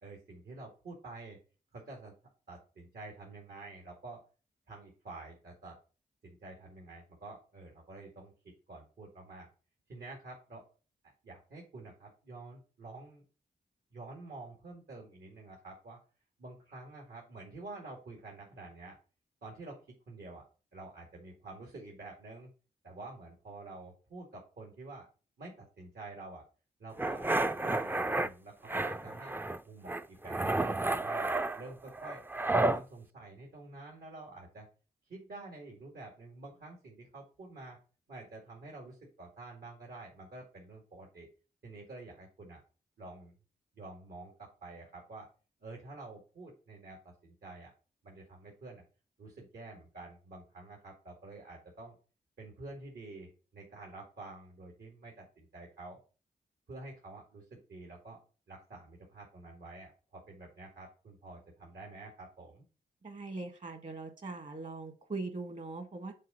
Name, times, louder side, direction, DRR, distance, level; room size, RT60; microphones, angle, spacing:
voice 1, 0.0-1.4 1.7-2.1 2.5-4.2 4.7-5.8 6.2-9.5 9.9-10.6 11.2-13.2 13.9-16.0 16.4-19.0 19.4-20.5 20.7-22.5 22.8-25.1 25.4-26.4 26.8-29.4 29.6-32.2 32.5-34.7 35.1-37.8 38.1-41.3 41.6-42.6 43.0-43.3 43.7-45.3 45.6-47.7 48.0-48.8 49.2-52.0 52.4-56.0 56.7-58.2 58.5-62.6, right 2 dB, 75° right, -1 dB, 2.1 m, -49 dB
sound 1, 27.0-28.3 28.7-29.6 29.9-32.8, right 2 dB, 10° right, 0.4 m, -31 dB
voice 2, 63.0-66.1, right 3 dB, 50° right, 7 dB, 1.7 m, -41 dB
6.6 x 3.9 x 5.5 m, 0.35 s
cardioid pair, 55°, 17 cm